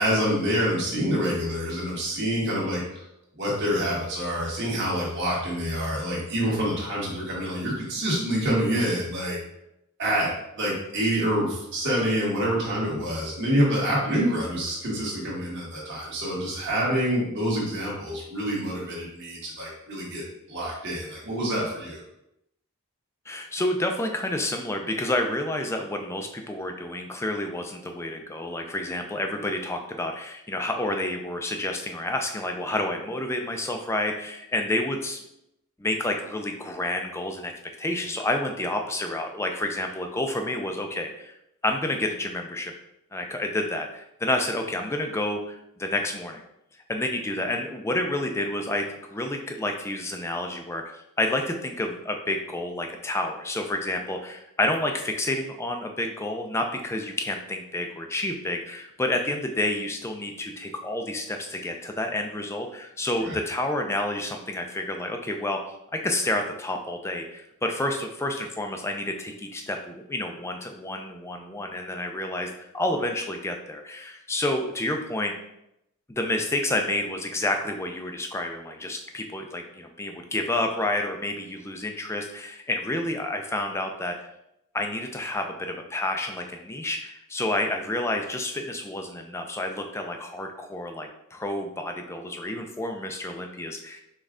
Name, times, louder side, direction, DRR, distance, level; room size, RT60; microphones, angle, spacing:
voice 1, 0.0-2.8 3.3-9.4 10.0-22.0 63.2-63.4, equal, 55° right, -5 dB, 1.6 m, -27 dB
voice 2, 23.3-35.2 35.8-37.5 37.8-41.3 41.6-42.7 43.1-46.4 46.9-65.6 65.9-72.5 72.7-75.3 76.1-84.1 84.7-94.0, left 1 dB, 10° left, 4 dB, 0.4 m, -29 dB
5.3 x 2.4 x 3.6 m, 0.82 s
head